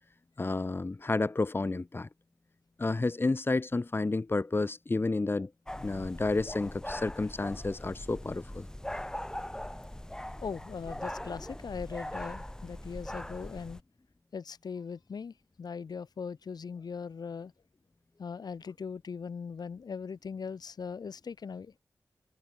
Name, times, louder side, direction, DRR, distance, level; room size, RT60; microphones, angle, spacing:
voice 1, 0.4-2.1 2.8-5.5 5.8-8.7, left 3 dB, 35° left, 1.8 m, -30 dB
sound 1, 5.7-13.8, left 1 dB, 10° left, 5.5 m, -41 dB
voice 2, 10.4-13.8 14.3-17.5 18.2-21.7, left 5 dB, 85° left, 6.1 m, -40 dB
wide cardioid pair, 95°, 7 cm